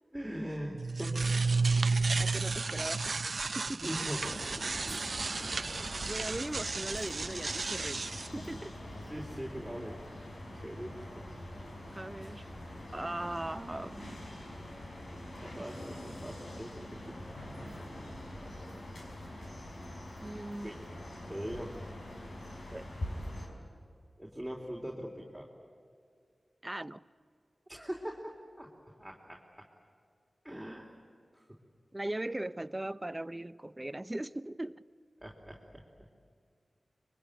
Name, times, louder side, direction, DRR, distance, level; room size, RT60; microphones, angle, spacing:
voice 1, 0.1-1.2 3.5-5.0 5.4-5.7 9.0-10.0 10.5-11.3 12.3-12.4 15.4-17.1 20.6-20.9 21.3-22.1 24.2-25.5 27.7-28.7 29.0-29.7 30.4-30.9 31.3-31.5 35.2-36.1, equal, 5° right, -1 dB, 3.7 m, -42 dB
sound 1, 0.7-8.3, right 4 dB, 65° right, 0.6 m, -32 dB
voice 2, 2.2-3.2 3.5-3.8 5.8-8.7 11.9-12.4 12.9-14.3 20.2-20.7 22.7-22.8 26.6-27.0 31.9-34.8, right 1 dB, 25° right, 15 dB, 0.7 m, -39 dB
sound 2, 4.2-23.5, left 1 dB, 75° left, 5.8 m, -44 dB
25.0 x 23.0 x 9.2 m, 2.2 s
cardioid pair, 50°, 0 cm